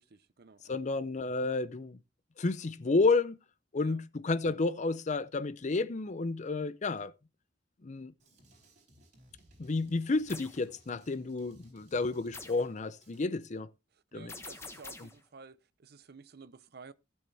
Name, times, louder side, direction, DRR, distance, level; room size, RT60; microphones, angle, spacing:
voice 1, 0.1-0.8 3.8-4.0 14.1-16.9, right 4 dB, 55° right, 0.6 m, -53 dB
voice 2, 0.7-2.0 2.4-3.4 3.7-7.1 7.8-8.1 9.6-13.7 14.1-14.3 15.0-15.1, left 3 dB, 40° left, 0.5 m, -31 dB
Drum kit, 8.2-13.2, right 1 dB, 40° right, 4.4 m, -61 dB
sound 1, 10.3-10.6 12.3-12.7 14.3-15.2, left 3 dB, 15° left, 1.1 m, -46 dB
15.5 x 6.4 x 3.3 m
head